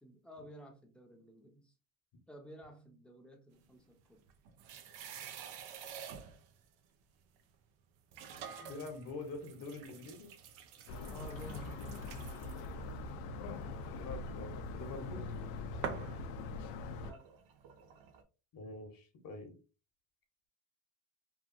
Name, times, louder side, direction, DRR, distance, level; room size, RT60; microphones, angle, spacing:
voice 1, 0.0-1.7 2.3-4.3 11.1-12.6 17.0-17.3, right 1 dB, ahead, 0.6 m, -53 dB
sound 1, 4.0-6.6 7.4-7.5 8.1-15.4 15.8-18.2, right 7 dB, 85° right, 0.6 m, -49 dB
voice 2, 8.6-10.3 13.9-15.3 18.5-19.6, left 3 dB, 50° left, 0.9 m, -45 dB
sound 2, 10.9-17.1, left 3 dB, 85° left, 0.5 m, -42 dB
3.1 x 2.3 x 2.4 m
cardioid pair, 105°, 43 cm